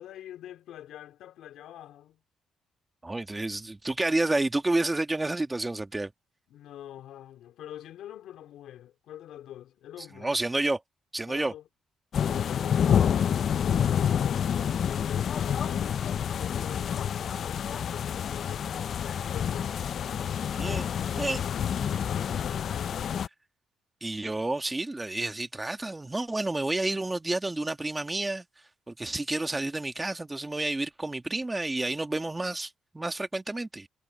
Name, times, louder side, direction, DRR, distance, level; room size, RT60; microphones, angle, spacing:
voice 1, 0.0-2.2 6.5-10.4 11.3-11.7 12.1-19.7 20.6-23.2, left 12 dB, 80° left, 2.8 m, -46 dB
voice 2, 3.0-6.1 10.1-10.8 11.1-11.5 20.5-20.9 21.2-21.4 24.0-28.4 28.9-33.9, right 2 dB, 15° right, 1.8 m, -30 dB
sound 1, 12.1-23.3, left 8 dB, 60° left, 0.4 m, -28 dB
cardioid pair, 90°, 0 cm